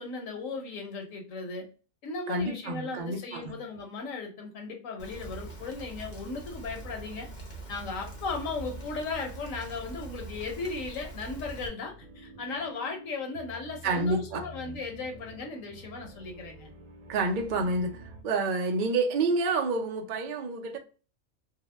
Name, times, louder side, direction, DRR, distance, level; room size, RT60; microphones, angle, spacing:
voice 1, 0.0-1.7 2.0-7.3 7.7-16.7, left 4 dB, 75° left, 1.2 m, -36 dB
voice 2, 2.3-3.6 13.8-14.4 17.1-20.8, right 3 dB, 60° right, 0.5 m, -28 dB
Rain, 5.0-11.7, right 2 dB, 40° left, 0.7 m, -43 dB
sound 1, 11.4-18.2, right 1 dB, 85° right, 1.1 m, -49 dB
2.8 x 2.0 x 3.1 m
omnidirectional pair, 1.4 m